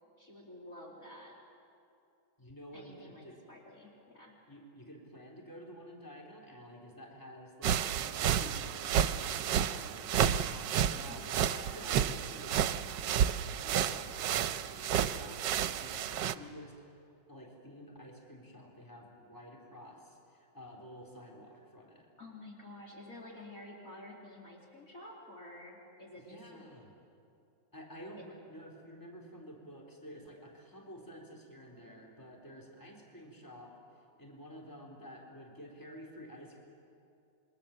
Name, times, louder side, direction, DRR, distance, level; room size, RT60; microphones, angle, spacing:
voice 1, 0.2-1.3 2.7-4.3 10.9-11.3 11.9-12.1 22.2-26.7 28.1-28.2, left 1 dB, 50° left, -2 dB, 3.1 m, -50 dB
voice 2, 2.4-3.4 4.5-16.7 17.3-22.1 26.2-26.9 27.7-33.7 34.2-36.6, equal, 10° left, -2 dB, 3.8 m, -51 dB
sound 1, 7.6-16.3, right 9 dB, 75° right, 1.4 m, -31 dB
27.0 x 23.0 x 7.3 m, 2.6 s
omnidirectional pair, 1.9 m